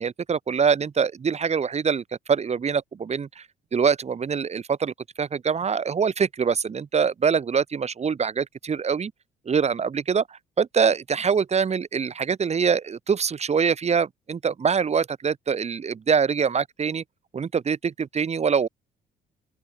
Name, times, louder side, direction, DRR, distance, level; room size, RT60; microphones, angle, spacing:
voice 1, 0.0-3.5 3.7-9.1 9.5-17.0 17.3-18.7, right 6 dB, 40° right, 2.4 m, -24 dB
open air
supercardioid pair, 65°, 17 cm